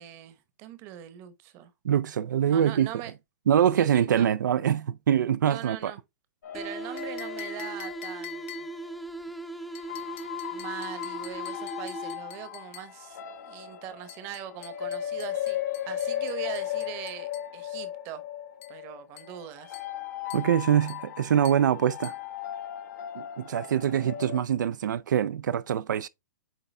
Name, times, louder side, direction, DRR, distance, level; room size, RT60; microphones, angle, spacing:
voice 1, 0.0-1.7 2.5-3.1 3.8-4.3 5.4-6.0 6.5-8.7 10.5-15.6 15.9-18.2 18.7-19.8, right 12 dB, 25° right, 0.9 m, -41 dB
voice 2, 1.8-2.9 3.5-5.9 20.3-22.1 23.1-26.1, right 9 dB, 85° right, 0.5 m, -24 dB
sound 1, 6.4-9.0 9.7-24.4, left 11 dB, 65° left, 1.3 m, -37 dB
sound 2, 6.5-12.5, right 2 dB, ahead, 0.5 m, -39 dB
sound 3, 7.0-8.9 9.7-13.0 14.1-17.5 18.6-18.8 19.2-19.4 19.7-20.0 20.3-20.6 20.9-21.1 21.4-21.7 22.0-22.3, left 12 dB, 45° left, 0.8 m, -47 dB
8.3 x 3.7 x 3.3 m
hypercardioid pair, 165°, 10 cm